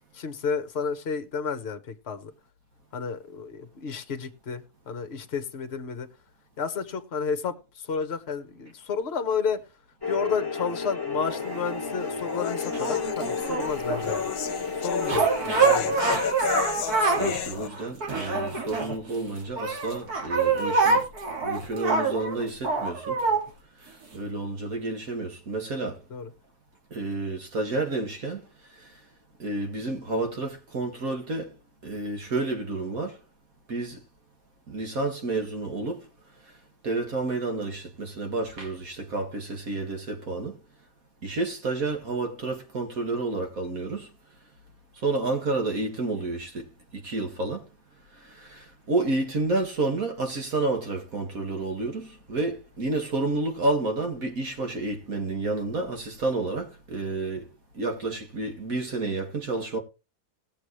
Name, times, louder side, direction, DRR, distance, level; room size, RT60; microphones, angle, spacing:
voice 1, 0.1-2.3 2.9-6.1 6.6-7.6 7.9-9.6 10.1-14.3 14.8-15.9 23.3-23.4 26.1-26.3, left 6 dB, 45° left, 1.3 m, -31 dB
sound 1, 10.0-16.0, left 4 dB, 15° left, 1.5 m, -32 dB
sound 2, 11.3-17.7, left 7 dB, 70° left, 1.3 m, -32 dB
sound 3, 12.7-14.1 15.0-17.4 17.7-19.2 19.6-23.4 24.1-24.2, right 4 dB, 85° right, 2.7 m, -25 dB
voice 2, 17.1-21.0 21.4-23.2 24.1-26.0 26.9-28.4 28.8-28.9 29.4-31.5 31.8-33.2 33.7-34.0 34.7-36.1 36.8-40.6 41.2-44.1 45.0-46.7 46.9-47.7 48.2-57.5 57.7-59.8, right 2 dB, 65° right, 2.4 m, -30 dB
19.0 x 6.9 x 3.2 m
omnidirectional pair, 1.6 m